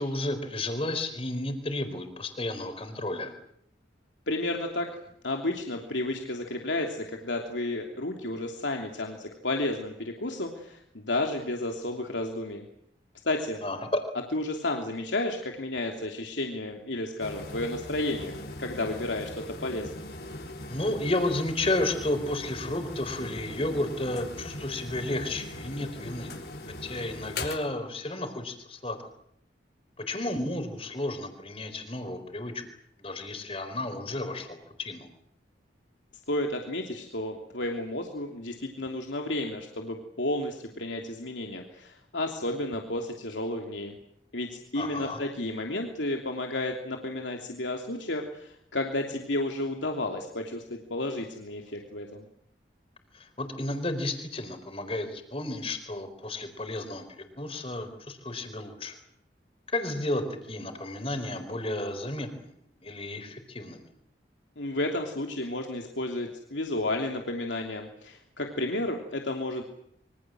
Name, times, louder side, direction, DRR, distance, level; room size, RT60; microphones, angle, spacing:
voice 1, 0.0-3.3 13.6-14.0 20.7-26.3 26.8-29.0 30.1-32.6 33.0-35.1 44.8-45.2 53.1-59.0 59.7-62.5 62.8-63.8, left 1 dB, 30° left, 7 dB, 4.3 m, -32 dB
voice 2, 4.3-4.9 5.2-12.6 13.2-13.6 14.3-20.1 36.3-43.9 44.3-52.2 64.6-69.6, left 2 dB, 85° left, 2 dB, 3.1 m, -32 dB
sound 1, 17.2-27.6, left 1 dB, 55° left, 3.9 m, -40 dB
26.5 x 24.5 x 7.8 m, 0.71 s
head